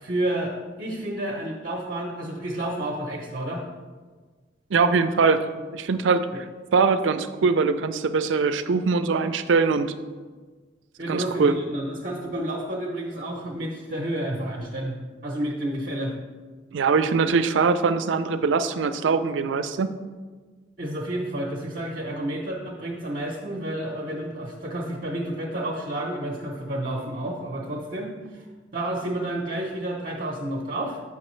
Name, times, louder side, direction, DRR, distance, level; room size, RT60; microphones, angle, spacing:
voice 1, 0.0-3.6 11.0-16.1 20.8-28.4 28.7-31.0, right 1 dB, 45° right, -3 dB, 0.7 m, -30 dB
voice 2, 4.7-5.5 5.7-6.4 6.7-9.9 11.1-11.6 16.7-19.9, right 4 dB, 85° right, 11 dB, 0.4 m, -22 dB
7.6 x 5.8 x 3.1 m, 1.4 s
head